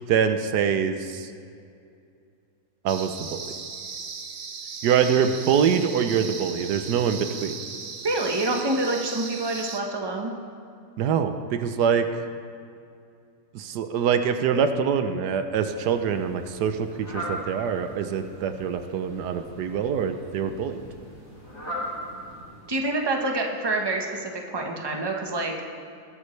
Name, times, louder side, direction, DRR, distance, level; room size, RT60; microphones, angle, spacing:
voice 1, 0.1-1.3 2.8-3.4 4.8-7.5 11.0-12.2 13.5-20.8, right 7 dB, 85° right, 8 dB, 1.3 m, -24 dB
sound 1, 2.9-9.8, right 5 dB, 55° right, 1.3 m, -37 dB
voice 2, 8.0-10.3 22.7-25.5, right 2 dB, 15° right, 1 dB, 1.1 m, -27 dB
Fowl, 15.6-22.9, equal, 20° left, 3.8 m, -39 dB
20.0 x 12.5 x 3.3 m, 2.4 s
omnidirectional pair, 1.7 m